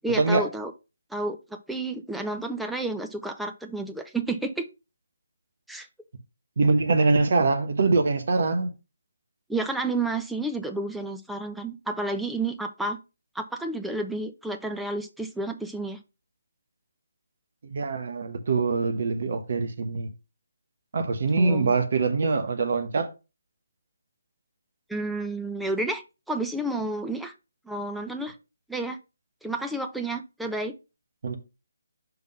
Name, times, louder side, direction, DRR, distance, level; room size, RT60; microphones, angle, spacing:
voice 1, 0.0-0.7 1.1-1.4 1.7-4.7 5.7-5.9 9.5-13.0 13.3-16.0 21.4-21.7 24.9-27.3 27.7-28.3 28.7-29.0 29.4-30.7, right 2 dB, ahead, 0.5 m, -30 dB
voice 2, 6.6-8.7 17.6-20.1 20.9-23.1 31.2-31.3, right 3 dB, 45° right, 1.1 m, -23 dB
5.8 x 3.6 x 5.6 m
figure-of-eight pair, 145°, 0 cm